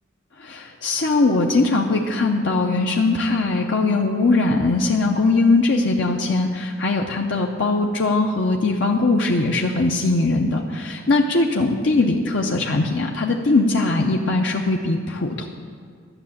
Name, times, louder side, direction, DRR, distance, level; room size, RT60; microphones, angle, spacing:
voice 1, 0.4-15.5, left 3 dB, 65° left, 1 dB, 0.7 m, -20 dB
12.0 x 6.7 x 8.6 m, 2.1 s
head